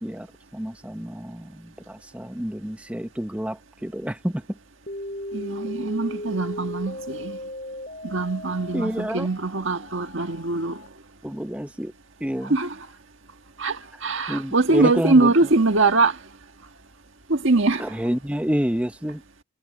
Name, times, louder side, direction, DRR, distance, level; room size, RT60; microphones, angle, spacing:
voice 1, 0.5-4.4 8.7-9.3 11.2-11.9 12.2-12.6 14.3-15.3 17.8-19.2, equal, 5° right, 0.7 m, -28 dB
sound 1, 4.9-10.9, left 1 dB, 35° left, 5.6 m, -36 dB
voice 2, 5.3-7.4 8.0-10.8 12.4-12.9 13.6-16.2 17.3-18.0, right 3 dB, 60° right, 1.7 m, -22 dB
head